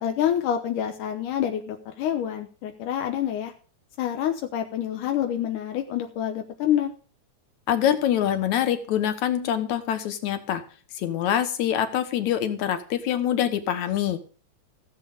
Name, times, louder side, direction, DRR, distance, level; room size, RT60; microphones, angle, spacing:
voice 1, 0.0-3.5 4.0-6.9, left 10 dB, 85° left, 4 dB, 2.6 m, -27 dB
voice 2, 7.7-10.6 10.9-14.2, left 10 dB, 70° left, 9 dB, 2.5 m, -25 dB
15.5 x 7.9 x 5.2 m, 0.39 s
omnidirectional pair, 3.6 m